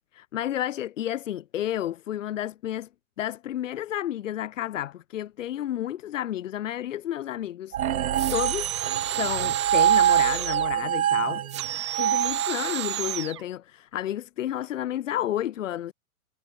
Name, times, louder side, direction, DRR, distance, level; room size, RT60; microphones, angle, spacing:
voice 1, 0.1-2.9 3.2-7.8 8.3-8.7 9.0-11.4 12.0-15.9, left 12 dB, 55° left, 0.8 m, -31 dB
sound 1, 7.7-13.2, right 10 dB, 70° right, 0.8 m, -25 dB
sound 2, 8.1-10.7 11.5-13.4, right 12 dB, 20° right, 0.4 m, -31 dB
figure-of-eight pair, 105°, 45 cm